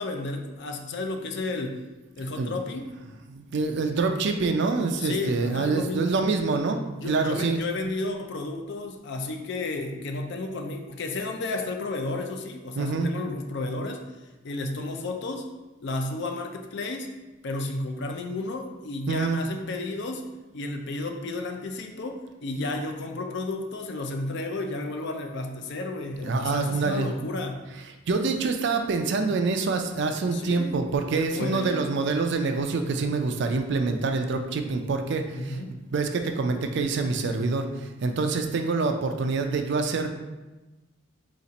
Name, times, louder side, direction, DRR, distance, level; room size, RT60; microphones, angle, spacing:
voice 1, 0.0-1.8 2.2-2.9 5.0-6.1 7.0-14.0 14.4-15.5 15.8-17.1 17.4-20.2 20.5-27.7 30.3-30.8 31.2-31.8 35.3-35.8, left 2 dB, 55° left, 4 dB, 0.4 m, -32 dB
voice 2, 3.3-7.6 12.8-13.1 19.1-19.4 26.2-27.1 28.1-35.6 35.9-40.1, right 4 dB, 55° right, 6 dB, 0.4 m, -26 dB
4.1 x 2.4 x 4.0 m, 1.1 s
head